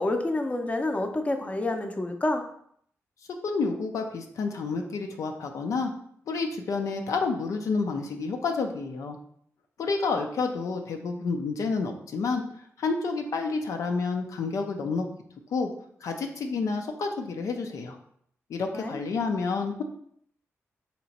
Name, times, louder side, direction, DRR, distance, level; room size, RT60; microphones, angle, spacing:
voice 1, 0.0-2.4 18.7-19.0, left 2 dB, 25° left, 5 dB, 0.6 m, -28 dB
voice 2, 3.4-5.9 6.3-9.2 9.8-12.4 12.8-15.0 15.5-15.7 16.0-18.0 18.5-19.8, left 4 dB, 80° left, 4 dB, 0.5 m, -29 dB
3.3 x 2.9 x 4.1 m, 0.66 s
cardioid pair, 70°, 6 cm